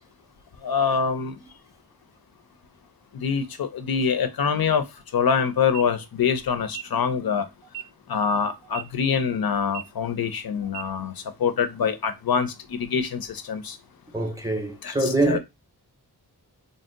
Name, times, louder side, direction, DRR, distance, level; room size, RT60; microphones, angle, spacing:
voice 1, 0.6-1.4 3.1-4.9 5.1-7.5 8.1-13.8 14.8-15.4, left 6 dB, 60° left, 0.6 m, -25 dB
sound 1, 5.6-5.8 6.6-6.8 7.6-7.8 8.6-8.8 9.6-9.8 10.6-10.8, right 13 dB, 65° right, 0.5 m, -36 dB
voice 2, 14.1-15.4, right 2 dB, 10° right, 0.6 m, -24 dB
2.6 x 2.0 x 3.7 m
wide cardioid pair, 75°, 41 cm